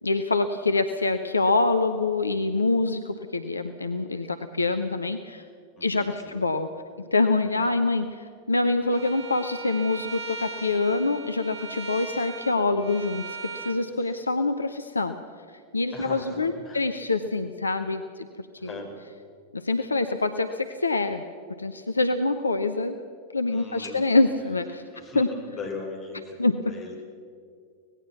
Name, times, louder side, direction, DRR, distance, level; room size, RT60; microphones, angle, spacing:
voice 1, 0.0-5.4 5.8-6.7 7.1-15.1 15.7-18.3 18.6-18.7 19.5-21.2 21.6-23.0 23.3-24.8 25.1-25.3 26.4-26.5, left 3 dB, 80° left, 9 dB, 0.8 m, -25 dB
voice 2, 5.8-6.4 7.5-7.6 14.0-14.2 15.9-16.8 18.6-19.0 23.4-24.1 24.4-24.5 24.9-27.0, left 3 dB, 30° left, 2 dB, 5.4 m, -40 dB
Bowed string instrument, 8.9-13.8, right 4 dB, 55° right, 2.4 m, -39 dB
25.0 x 19.0 x 6.0 m, 2.2 s
figure-of-eight pair, 90°, 0 cm